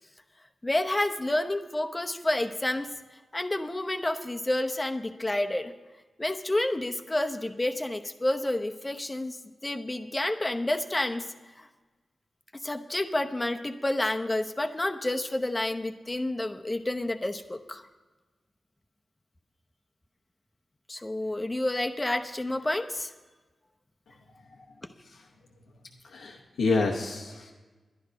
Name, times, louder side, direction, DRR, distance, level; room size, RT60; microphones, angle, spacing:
voice 1, 0.6-2.9 3.3-5.7 6.2-11.3 11.6-11.7 12.6-17.8 20.9-23.1, left 1 dB, 25° left, 6 dB, 0.9 m, -29 dB
voice 2, 26.0-27.5, left 3 dB, 90° left, -2 dB, 0.9 m, -29 dB
11.0 x 11.0 x 5.1 m, 1.3 s
cardioid pair, 45°, 0 cm